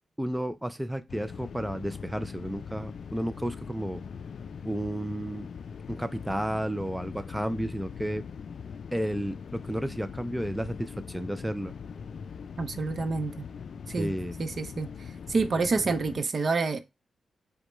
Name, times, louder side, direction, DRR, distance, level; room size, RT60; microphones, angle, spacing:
voice 1, 0.2-4.0 4.6-5.5 5.9-8.2 8.9-11.7 14.0-14.3, right 1 dB, 5° right, 0.4 m, -32 dB
sound 1, 1.1-16.2, left 6 dB, 70° left, 0.3 m, -41 dB
voice 2, 12.6-13.5 13.9-14.1 14.4-14.9 15.3-16.8, right 4 dB, 55° right, 0.6 m, -28 dB
5.0 x 2.2 x 4.3 m
cardioid pair, 80°, 0 cm